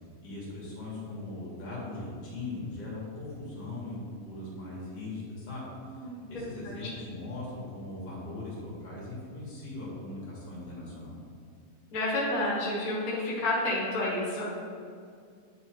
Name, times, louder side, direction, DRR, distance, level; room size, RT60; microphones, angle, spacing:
voice 1, 0.2-5.7 6.3-11.2, left 2 dB, 50° left, -6 dB, 2.5 m, -39 dB
voice 2, 5.8-6.9 11.9-14.5, left 1 dB, 70° left, -6 dB, 0.8 m, -30 dB
9.5 x 3.3 x 4.3 m, 2.3 s
omnidirectional pair, 4.0 m